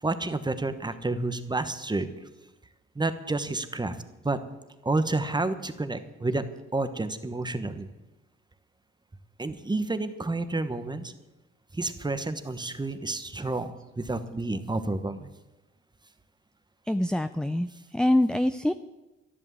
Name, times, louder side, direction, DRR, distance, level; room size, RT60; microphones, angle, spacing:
voice 1, 0.0-2.1 2.9-4.0 4.2-4.4 4.8-6.4 6.7-7.9 9.4-11.1 11.7-15.3, right 2 dB, 15° right, 10 dB, 1.2 m, -30 dB
voice 2, 16.9-18.7, left 1 dB, 5° left, 11 dB, 0.5 m, -25 dB
12.0 x 11.5 x 7.5 m, 1.1 s
cardioid pair, 90°, 30 cm